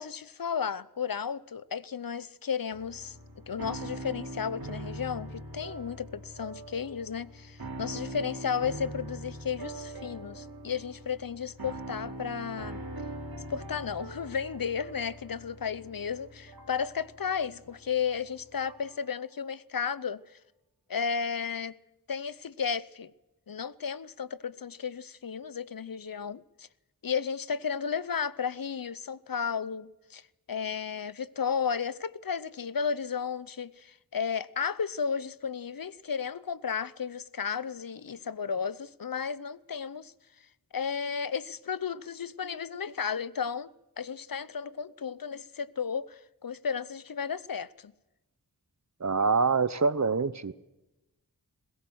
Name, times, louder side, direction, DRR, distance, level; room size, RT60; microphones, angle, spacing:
voice 1, 0.0-3.2 3.5-12.8 13.5-20.2 20.9-21.8 22.1-23.1 23.5-26.7 27.0-30.2 30.5-40.1 40.7-43.7 44.0-47.9, left 6 dB, 65° left, 0.8 m, -33 dB
sound 1, 2.7-19.0, right 1 dB, 75° right, 3.2 m, -42 dB
voice 2, 49.0-50.5, right 4 dB, 50° right, 1.0 m, -25 dB
21.0 x 17.5 x 7.9 m
wide cardioid pair, 55°, 37 cm